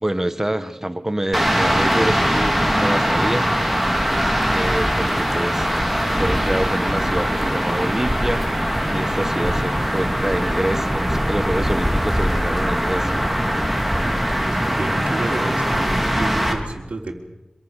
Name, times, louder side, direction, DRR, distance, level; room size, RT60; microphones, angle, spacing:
voice 1, 0.0-3.5 4.5-5.8 6.2-8.5 8.9-13.3, right 1 dB, 15° right, 11 dB, 1.7 m, -26 dB
sound 1, 1.3-16.5, equal, ahead, 4.3 m, -21 dB
voice 2, 14.4-17.1, right 2 dB, 75° right, 0 dB, 3.7 m, -30 dB
26.0 x 23.5 x 6.7 m, 1.0 s
wide cardioid pair, 70°, 2 cm